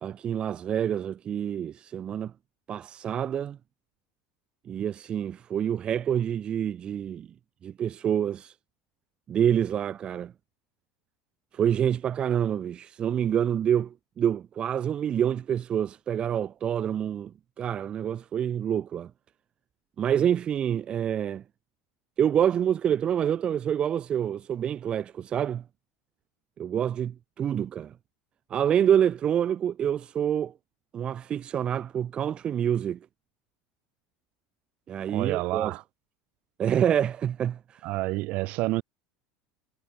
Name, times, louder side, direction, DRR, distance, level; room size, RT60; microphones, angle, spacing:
voice 1, 0.0-2.3 2.7-3.6 4.7-7.3 7.6-8.5 9.3-10.3 11.5-17.3 17.6-19.1 20.0-21.4 22.2-25.6 26.6-27.9 28.5-30.5 30.9-33.0 34.9-35.7 36.6-37.9, right 9 dB, 35° right, 0.6 m, -27 dB
voice 2, 35.1-35.8 37.8-38.8, right 21 dB, 60° right, 2.3 m, -29 dB
supercardioid pair, 110°, 3 cm